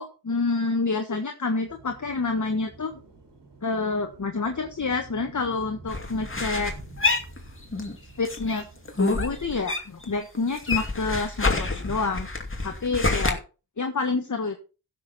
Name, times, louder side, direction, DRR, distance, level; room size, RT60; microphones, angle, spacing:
voice 1, 0.0-3.0 3.6-6.7 8.2-8.7 9.0-12.3 12.6-13.4 13.8-14.6, left 3 dB, 45° left, 5 dB, 1.5 m, -28 dB
sound 1, 1.6-9.5, right 3 dB, 90° right, 4.5 m, -48 dB
sound 2, 5.9-8.0 8.2-10.1 10.3-13.3, left 3 dB, 30° left, 2.4 m, -27 dB
15.5 x 6.5 x 4.2 m, 0.33 s
cardioid pair, 55°, 41 cm